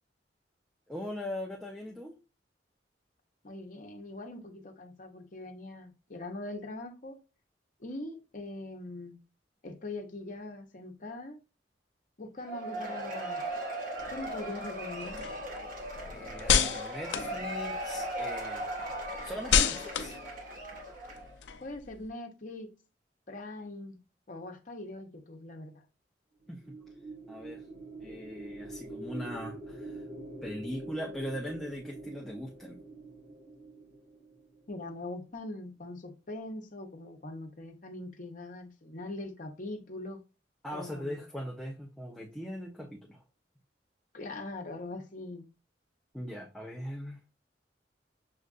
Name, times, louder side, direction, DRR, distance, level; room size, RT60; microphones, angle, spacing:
voice 1, 0.9-2.1 16.1-18.7 19.2-20.1 26.5-26.6 27.3-27.6 28.0-30.0 30.4-32.8 40.6-43.2 46.1-47.2, equal, ahead, 0.6 m, -40 dB
voice 2, 3.4-7.2 7.8-9.2 9.6-11.4 12.2-13.4 14.1-15.2 21.6-22.7 23.3-24.0 24.3-25.9 34.7-40.2 40.7-41.2 44.1-45.4, left 2 dB, 50° left, 0.9 m, -42 dB
Cheering / Applause / Crowd, 12.4-21.3, right 1 dB, 50° right, 1.4 m, -38 dB
sound 1, 14.0-18.1 18.5-22.0, left 7 dB, 85° left, 0.5 m, -31 dB
sound 2, 26.4-34.9, right 2 dB, 80° right, 2.5 m, -45 dB
6.4 x 2.5 x 2.4 m
head